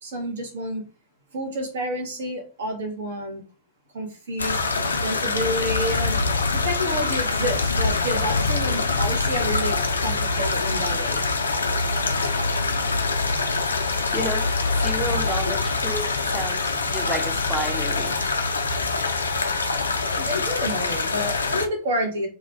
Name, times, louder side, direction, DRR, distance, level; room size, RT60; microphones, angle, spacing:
voice 1, 0.0-0.8 1.3-3.4 3.9-4.6 5.0-11.3 20.1-22.3, equal, 65° right, 0.8 m, -29 dB
sound 1, 4.4-21.7, left 3 dB, 75° left, 0.3 m, -24 dB
voice 2, 13.8-18.2, right 1 dB, 5° right, 0.5 m, -32 dB
2.4 x 2.2 x 3.1 m
figure-of-eight pair, 90°, 0 cm